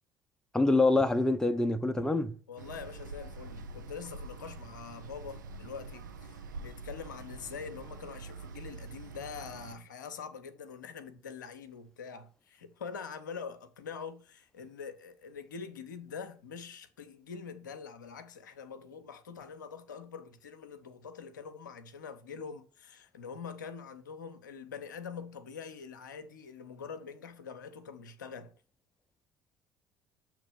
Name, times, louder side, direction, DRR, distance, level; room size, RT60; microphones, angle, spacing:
voice 1, 0.5-2.4, left 2 dB, 5° left, 0.6 m, -25 dB
voice 2, 2.5-28.5, left 6 dB, 75° left, 0.5 m, -44 dB
sound 1, 2.6-9.8, right 3 dB, 75° right, 0.5 m, -45 dB
6.6 x 3.1 x 4.9 m
figure-of-eight pair, 55°, 10 cm